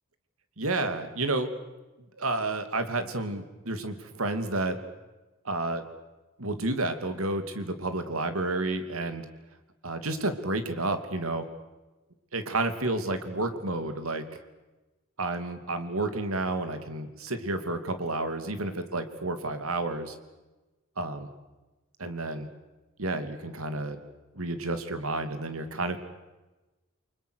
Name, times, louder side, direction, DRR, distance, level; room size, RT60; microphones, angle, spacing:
voice 1, 0.6-1.5 2.2-4.8 5.4-5.9 6.4-9.2 9.8-11.5 12.3-14.2 15.2-20.1 21.0-21.3 22.0-22.5 23.0-24.0 24.4-26.0, right 2 dB, 85° right, 8 dB, 2.8 m, -30 dB
30.0 x 24.0 x 6.5 m, 1.1 s
head